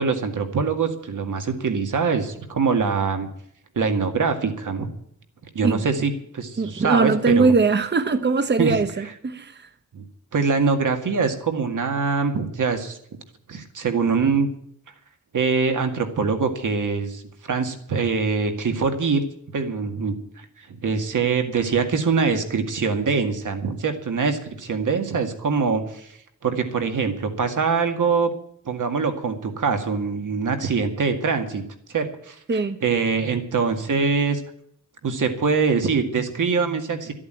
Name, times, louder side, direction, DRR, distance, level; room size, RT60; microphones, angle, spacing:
voice 1, 0.0-3.3 3.8-4.9 5.5-7.5 8.6-9.1 9.9-10.0 10.3-13.0 13.5-14.5 15.3-17.2 17.5-19.2 19.5-26.1 26.4-28.3 28.7-31.6 31.9-34.4 35.0-37.1, right 5 dB, 90° right, 2.1 m, -23 dB
voice 2, 6.6-9.6 32.5-32.8, right 4 dB, 35° right, 1.0 m, -21 dB
13.5 x 8.6 x 9.2 m
wide cardioid pair, 90°, 30 cm